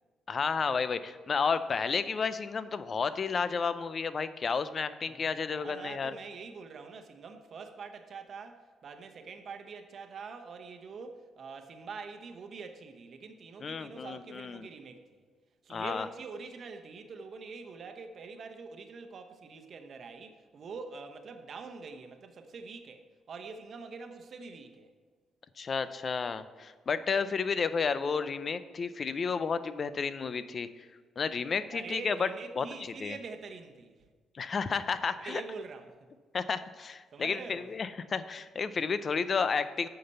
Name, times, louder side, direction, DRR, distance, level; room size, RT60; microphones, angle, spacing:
voice 1, 0.3-6.1 13.6-14.7 15.7-16.1 25.6-30.9 31.2-32.3 32.6-33.2 34.3-35.4 36.3-39.9, left 5 dB, 45° left, 0.5 m, -32 dB
voice 2, 5.5-15.2 15.6-24.9 31.7-34.0 35.2-36.0 37.1-37.7, right 4 dB, 55° right, 0.9 m, -45 dB
8.4 x 5.9 x 5.5 m
cardioid pair, 90°, 0 cm